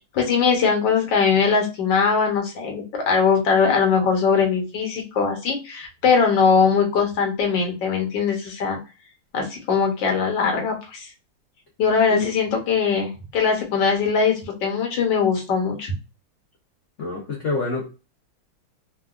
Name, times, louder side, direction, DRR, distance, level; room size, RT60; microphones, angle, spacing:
voice 1, 0.1-8.8 9.3-11.1 11.8-15.9, left 5 dB, 65° left, 2 dB, 1.4 m, -21 dB
voice 2, 12.1-12.5 17.0-17.9, left 3 dB, 90° left, -2 dB, 0.6 m, -27 dB
3.5 x 2.3 x 2.4 m, 0.31 s
omnidirectional pair, 2.4 m